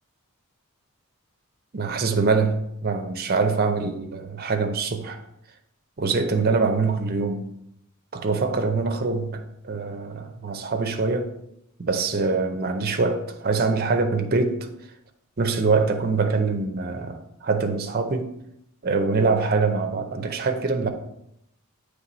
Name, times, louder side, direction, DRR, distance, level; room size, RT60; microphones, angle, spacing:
voice 1, 1.7-5.2 6.0-7.5 8.1-11.3 11.8-14.7 15.4-18.3 18.8-20.9, right 4 dB, 45° right, 0.6 m, -24 dB
7.5 x 3.3 x 4.0 m
head